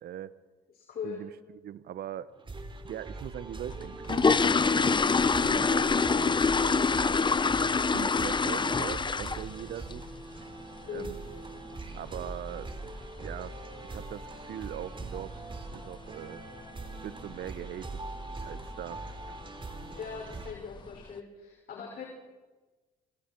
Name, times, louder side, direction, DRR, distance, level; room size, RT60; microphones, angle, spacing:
voice 1, 0.0-0.4 1.0-2.3 2.8-5.1 5.4-7.2 7.9-10.1 10.9-11.2 11.9-12.7 13.2-13.6 13.8-15.4 15.7-16.4 17.0-18.0 18.4-19.4, right 11 dB, 60° right, 16 dB, 1.0 m, -41 dB
voice 2, 0.7-1.2 10.9-11.1 19.9-22.0, left 6 dB, 55° left, 0 dB, 6.1 m, -40 dB
sound 1, 2.3-20.5, right 3 dB, 25° right, 3.2 m, -42 dB
sound 2, 3.7-9.6 9.9-10.2 10.5-10.6 11.0-11.1 11.5-11.7 12.0-12.1 12.7-12.8 13.0-13.2 13.7-14.0 14.3-14.4 14.8-15.0 15.3-15.4 15.8-15.9 16.6-16.9 17.2-17.5 17.9-18.0 18.4-18.5 19.3-19.4 19.8-20.3 20.8-20.9, left 4 dB, 25° left, 0.9 m, -25 dB
29.5 x 27.5 x 4.6 m, 1.3 s
hypercardioid pair, 55°, 18 cm